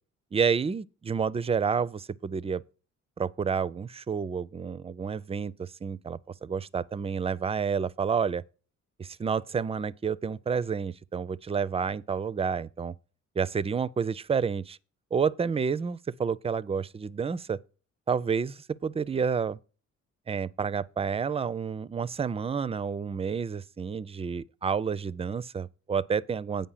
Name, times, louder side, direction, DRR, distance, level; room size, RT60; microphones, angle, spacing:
voice 1, 0.3-2.6 3.2-8.4 9.0-12.9 13.4-14.8 15.1-17.6 18.1-19.6 20.3-26.7, right 6 dB, 20° right, 0.4 m, -29 dB
8.7 x 5.3 x 5.6 m
cardioid pair, 90°, 30 cm